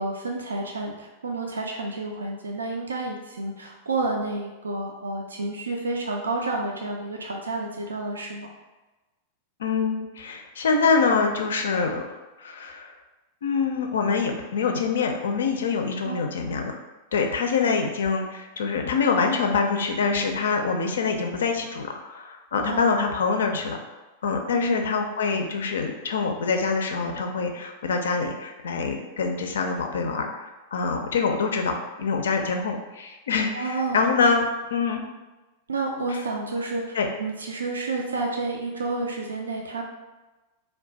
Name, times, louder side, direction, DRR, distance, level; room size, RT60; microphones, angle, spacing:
voice 1, 0.0-8.5 16.0-16.2 22.6-22.9 24.5-24.8 33.5-34.0 35.1-35.2 35.7-39.8, right 2 dB, 80° right, 0 dB, 0.3 m, -30 dB
voice 2, 9.6-12.0 12.4-12.9 13.4-16.8 17.1-23.8 24.2-34.5 34.7-35.0 36.9-37.1, left 5 dB, 70° left, 4 dB, 0.4 m, -25 dB
2.3 x 2.2 x 3.9 m, 1.1 s
figure-of-eight pair, 95°, 0 cm